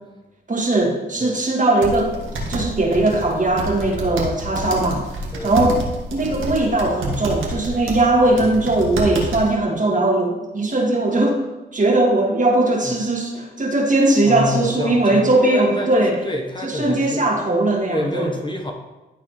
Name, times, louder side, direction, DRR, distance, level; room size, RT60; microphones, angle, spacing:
voice 1, 0.5-2.1 2.5-5.1 5.4-5.8 6.1-11.4 11.7-16.2 16.6-18.3, right 2 dB, 40° right, -1 dB, 1.9 m, -19 dB
sound 1, 1.8-9.6, right 1 dB, 75° right, 1.7 m, -29 dB
voice 2, 4.0-4.3 5.3-5.5 8.3-8.5 12.8-13.0 14.2-17.3 17.9-18.7, left 1 dB, 20° left, 1 dB, 1.3 m, -28 dB
12.0 x 4.1 x 3.2 m, 1.1 s
cardioid pair, 55°, 21 cm